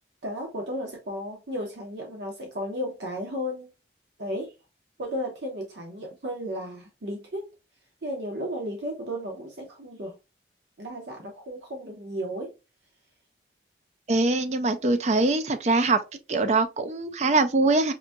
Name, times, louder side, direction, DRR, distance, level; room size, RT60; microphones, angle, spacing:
voice 1, 0.2-3.7 4.2-4.5 5.0-7.5 8.0-10.1 10.8-12.5, equal, 80° right, 0.9 m, -34 dB
voice 2, 14.1-16.0 16.3-17.9, right 3 dB, 40° right, 0.4 m, -23 dB
4.8 x 2.7 x 2.2 m
head